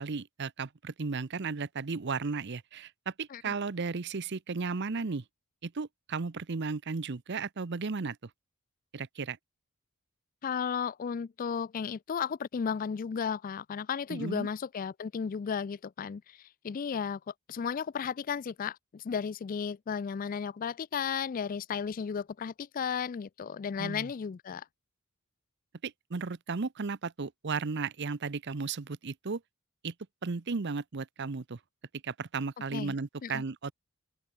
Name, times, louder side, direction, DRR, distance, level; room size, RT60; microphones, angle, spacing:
voice 1, 0.0-5.2 5.6-8.2 8.9-9.4 14.1-14.5 23.8-24.1 25.8-29.4 29.8-29.9 30.2-31.6 32.0-33.7, right 4 dB, 55° right, 0.7 m, -35 dB
voice 2, 10.4-17.2 17.5-24.6 32.7-33.0 33.2-33.4, left 6 dB, 40° left, 0.3 m, -34 dB
open air
head